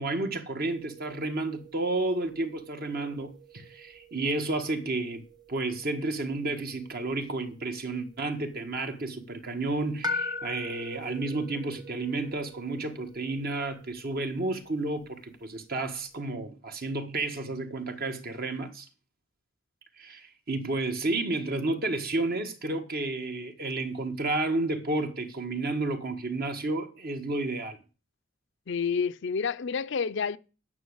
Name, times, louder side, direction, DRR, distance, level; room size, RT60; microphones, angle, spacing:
voice 1, 0.0-5.2 5.5-18.9 20.0-27.8, right 2 dB, 50° right, 1.6 m, -31 dB
sound 1, 0.6-16.1, left 3 dB, 20° right, 1.2 m, -43 dB
voice 2, 28.7-30.4, left 6 dB, 65° left, 0.6 m, -29 dB
9.5 x 6.2 x 8.1 m
head